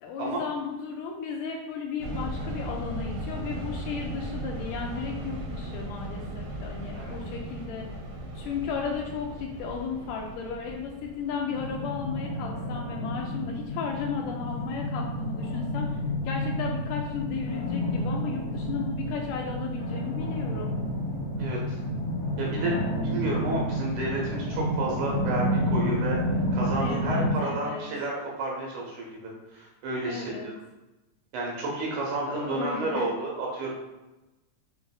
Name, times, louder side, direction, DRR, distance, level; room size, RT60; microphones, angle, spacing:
voice 1, 0.0-7.9 8.4-16.0 16.2-20.8 26.6-27.9 30.1-30.5 32.3-33.1, left 6 dB, 80° left, 0 dB, 1.9 m, -35 dB
sound 1, 2.0-12.2, right 1 dB, 90° right, 2.8 m, -37 dB
sound 2, 11.5-27.3, equal, 65° left, 2.4 m, -30 dB
voice 2, 21.4-21.8 22.4-26.2 26.5-30.5 31.3-33.7, right 2 dB, 75° right, -2 dB, 2.0 m, -31 dB
7.3 x 2.5 x 2.3 m, 1.0 s
omnidirectional pair, 3.9 m